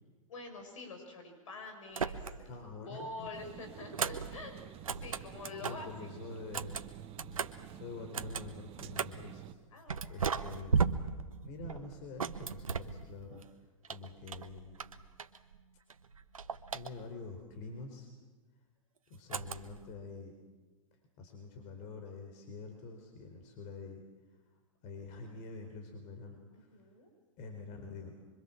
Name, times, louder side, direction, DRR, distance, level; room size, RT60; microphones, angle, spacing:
voice 1, 0.3-2.5 2.8-5.9 9.7-10.4 26.5-27.1, left 3 dB, 70° left, 5 dB, 6.6 m, -46 dB
sound 1, 1.9-2.6 2.9-5.9 6.4-9.3 9.9-13.5 13.8-15.6 15.9-17.3 19.3-19.9, right 5 dB, 85° right, 1.2 m, -37 dB
voice 2, 2.5-3.5 5.6-6.7 7.7-9.5 10.1-11.1 11.4-14.8 16.7-18.1 19.1-20.3 21.2-24.0 24.3-24.4 24.8-26.8 27.4-28.2, left 3 dB, 45° left, 5 dB, 4.2 m, -47 dB
sound 2, 3.3-9.5, right 12 dB, 35° right, 1.5 m, -50 dB
25.0 x 24.0 x 7.4 m, 1.4 s
hypercardioid pair, 105°, 17 cm